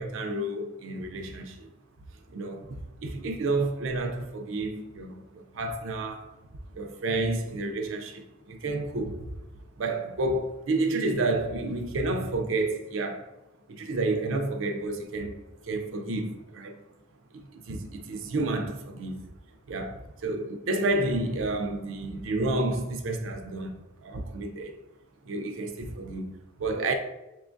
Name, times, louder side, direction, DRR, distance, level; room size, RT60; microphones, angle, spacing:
voice 1, 0.0-1.7 2.3-6.3 6.7-9.2 9.8-13.3 13.7-16.8 17.5-19.2 19.7-24.8 25.2-26.9, right 2 dB, 75° right, 0.5 m, -30 dB
6.0 x 2.3 x 2.5 m
head